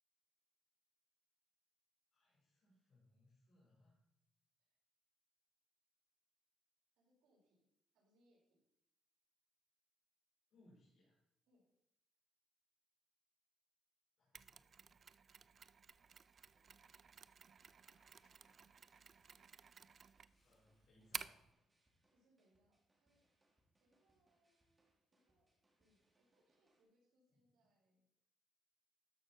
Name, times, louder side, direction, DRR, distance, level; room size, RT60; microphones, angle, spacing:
voice 1, 2.1-4.0 10.5-11.2 14.2-15.7 20.4-21.5, left 1 dB, 65° left, -6 dB, 4.4 m, -71 dB
voice 2, 7.0-7.6 7.9-8.6 11.5-11.7 22.1-23.2 23.8-25.5 25.8-28.0, right 1 dB, 90° right, -3 dB, 4.5 m, -79 dB
Mechanisms, 14.3-21.5, right 6 dB, 45° right, 0.3 m, -54 dB
sound 1, 15.9-26.8, right 1 dB, 20° right, 2.4 m, -82 dB
sound 2, 17.5-20.7 21.0-21.5, left 3 dB, 45° left, 2.2 m, -83 dB
13.0 x 6.2 x 4.2 m, 0.82 s
cardioid pair, 90°, 0 cm